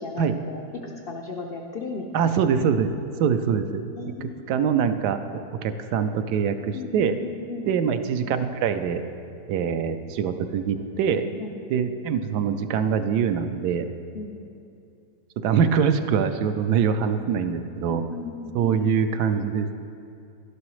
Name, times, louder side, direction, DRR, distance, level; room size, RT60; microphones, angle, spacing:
voice 1, 0.0-2.3 4.0-4.6 6.7-7.7 11.1-11.6 14.1-14.5 17.9-18.8, left 4 dB, 80° left, 1 dB, 0.5 m, -36 dB
voice 2, 2.1-2.9 3.2-3.8 4.2-5.2 5.6-7.1 7.7-9.1 9.5-11.2 11.7-13.9 15.4-18.0 18.5-19.7, right 7 dB, 75° right, 9 dB, 1.1 m, -24 dB
12.0 x 11.5 x 3.1 m, 2.5 s
omnidirectional pair, 1.8 m